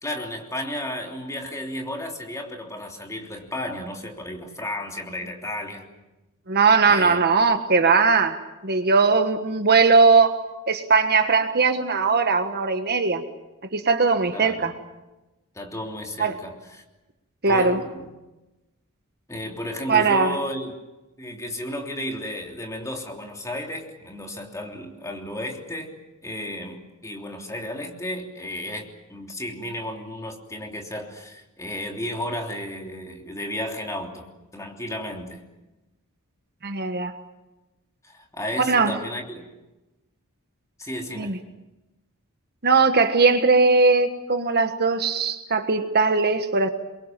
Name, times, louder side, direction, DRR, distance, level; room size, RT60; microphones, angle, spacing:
voice 1, 0.0-5.9 6.9-7.2 14.3-14.7 15.5-16.8 17.5-18.1 19.3-20.7 21.2-25.9 26.2-34.3 34.5-35.4 38.0-39.5 40.8-41.3, left 1 dB, 15° left, 1 dB, 3.3 m, -33 dB
voice 2, 6.5-10.3 10.7-13.2 13.7-14.7 16.2-16.3 17.4-17.8 19.9-20.4 36.6-37.1 38.6-39.0 41.2-41.4 42.6-46.7, right 4 dB, 45° right, 7 dB, 1.5 m, -19 dB
27.5 x 23.0 x 7.5 m, 1.0 s
head